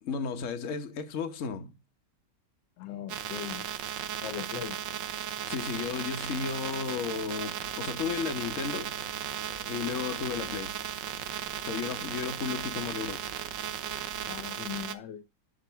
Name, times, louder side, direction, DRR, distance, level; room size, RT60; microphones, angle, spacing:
voice 1, 0.0-1.7 5.4-9.0 9.7-10.7 11.6-13.3, left 6 dB, 50° left, 1.2 m, -34 dB
voice 2, 2.8-3.7 4.2-4.8 14.3-15.2, left 10 dB, 80° left, 1.4 m, -39 dB
sound 1, 3.1-14.9, right 10 dB, 85° right, 1.5 m, -36 dB
sound 2, 7.6-14.5, right 1 dB, 40° right, 1.8 m, -52 dB
11.5 x 3.8 x 5.7 m
omnidirectional pair, 2.0 m